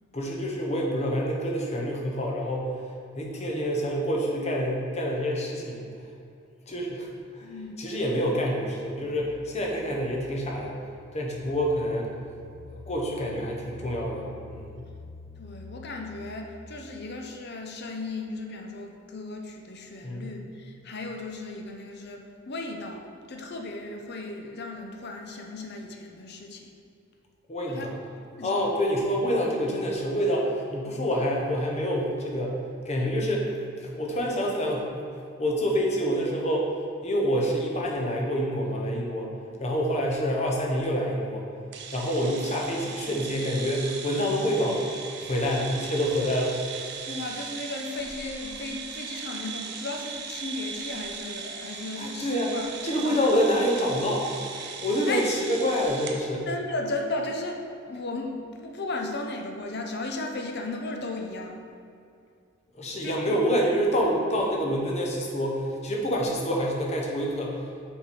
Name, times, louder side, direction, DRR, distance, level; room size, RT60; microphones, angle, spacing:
voice 1, 0.1-2.8 3.2-5.9 6.7-7.1 7.3-7.5 7.8-10.7 11.1-12.1 12.7-14.8 20.0-20.4 27.5-28.0 28.4-32.6 32.8-33.4 33.8-34.9 35.4-36.7 37.0-39.3 39.6-41.4 41.9-44.8 45.2-46.6 52.0-52.5 52.8-54.3 54.8-56.5 62.8-67.6, equal, 35° left, -1 dB, 1.0 m, -27 dB
voice 2, 7.4-7.8 15.4-26.7 27.7-27.9 28.4-28.7 42.2-42.3 47.1-53.2 55.1-55.3 56.5-61.6 63.0-63.4, left 2 dB, 55° left, 2 dB, 0.7 m, -35 dB
sound 1, 9.2-16.6, left 3 dB, 15° left, 0.5 m, -48 dB
sound 2, 41.7-56.2, right 6 dB, 55° right, 0.6 m, -38 dB
6.5 x 4.7 x 4.2 m, 2.4 s
head